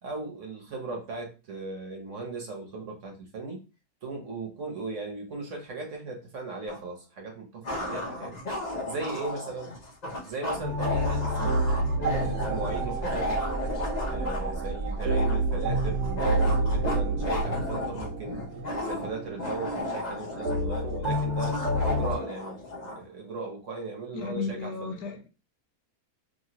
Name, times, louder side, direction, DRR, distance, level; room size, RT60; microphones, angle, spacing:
voice 1, 0.0-3.6 4.0-8.4 8.9-9.7 10.2-11.7 12.0-13.4 14.1-18.4 18.8-22.6 22.8-24.9, right 3 dB, 55° right, 1.1 m, -37 dB
sound 1, 6.7-6.8 7.6-23.0, left 1 dB, 55° left, 0.5 m, -34 dB
sound 2, 10.6-22.2, right 1 dB, 80° right, 1.3 m, -29 dB
sound 3, 10.8-17.4, right 2 dB, 25° right, 1.0 m, -35 dB
voice 2, 24.1-25.3, left 4 dB, 75° left, 1.0 m, -34 dB
3.0 x 2.7 x 2.8 m
omnidirectional pair, 1.7 m